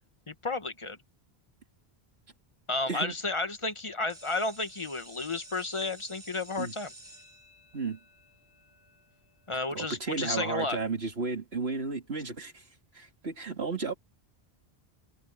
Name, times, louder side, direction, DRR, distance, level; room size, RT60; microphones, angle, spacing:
voice 1, 0.3-1.0 2.7-6.9 9.5-10.8, left 3 dB, 30° left, 1.1 m, -32 dB
sound 1, 4.1-9.7, right 2 dB, 50° right, 6.8 m, -52 dB
voice 2, 9.7-12.6 12.9-13.9, right 4 dB, 85° right, 3.0 m, -33 dB
omnidirectional pair, 1.0 m